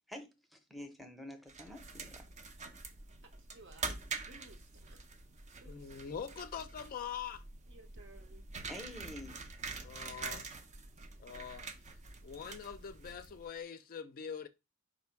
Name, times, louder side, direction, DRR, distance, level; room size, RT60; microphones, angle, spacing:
voice 1, 0.1-2.2 8.7-9.4, left 1 dB, ahead, 0.7 m, -48 dB
sound 1, 1.5-13.5, right 4 dB, 35° right, 0.5 m, -46 dB
voice 2, 3.2-5.0 5.6-6.1 7.7-8.5, right 2 dB, 60° right, 0.8 m, -59 dB
voice 3, 5.7-7.4 9.8-10.5 11.2-11.6 12.2-14.5, left 7 dB, 45° left, 0.4 m, -43 dB
4.4 x 2.6 x 4.4 m
head